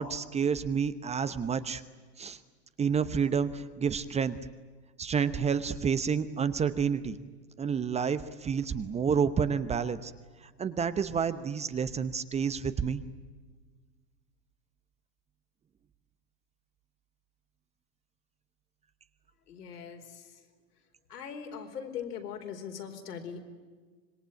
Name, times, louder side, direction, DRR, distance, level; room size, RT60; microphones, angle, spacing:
voice 1, 0.0-1.8 2.2-2.4 2.8-4.4 5.0-7.2 7.6-10.1 10.6-13.0, right 6 dB, 15° right, 13 dB, 0.9 m, -29 dB
voice 2, 19.5-20.4 21.1-23.4, left 7 dB, 70° left, 5 dB, 4.5 m, -41 dB
26.0 x 21.5 x 9.3 m, 1.4 s
hypercardioid pair, 115°, 49 cm